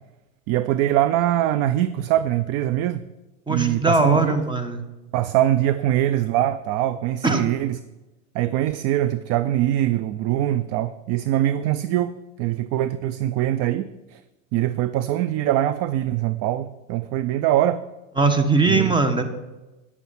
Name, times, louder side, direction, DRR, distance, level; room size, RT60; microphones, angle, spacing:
voice 1, 0.5-3.0 3.5-4.4 5.1-7.8 8.3-14.2 14.5-17.8 18.7-19.0, right 13 dB, 40° right, 14 dB, 0.4 m, -23 dB
voice 2, 3.5-4.8 7.2-7.4 18.2-19.2, right 3 dB, 10° right, 9 dB, 1.2 m, -20 dB
9.5 x 8.1 x 5.7 m, 1.1 s
hypercardioid pair, 110°, 39 cm